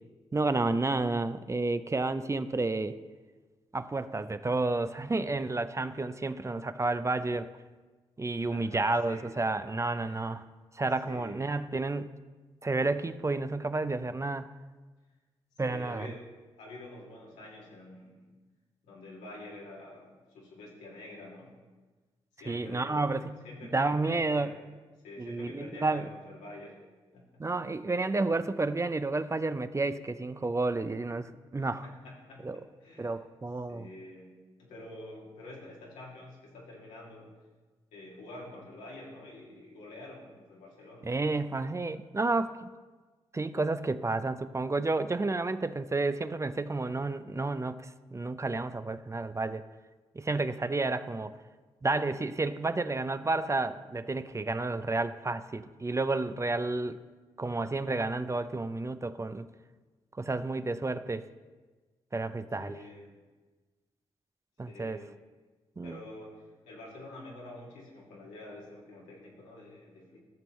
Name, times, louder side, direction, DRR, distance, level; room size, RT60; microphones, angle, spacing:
voice 1, 0.3-2.9 3.7-7.5 8.2-10.5 10.7-12.1 12.6-14.5 15.6-16.1 22.5-23.4 23.7-24.5 25.2-26.1 27.4-31.9 32.4-32.6 33.0-33.9 41.0-42.7 43.3-49.6 50.1-51.4 51.8-57.0 57.4-59.5 60.1-61.2 62.1-62.8 64.6-65.0 65.8-66.0, right 3 dB, 25° right, 12 dB, 0.5 m, -31 dB
voice 2, 8.5-9.7 10.1-10.3 11.0-11.5 15.7-16.3 16.6-18.3 18.8-21.5 22.4-24.7 25.0-26.7 27.1-27.3 31.8-33.2 33.7-34.3 34.6-37.3 37.9-41.1 62.6-63.2 64.6-65.1 65.8-70.2, left 2 dB, 90° left, -4 dB, 2.1 m, -47 dB
13.0 x 6.9 x 3.1 m, 1.3 s
supercardioid pair, 45°, 12 cm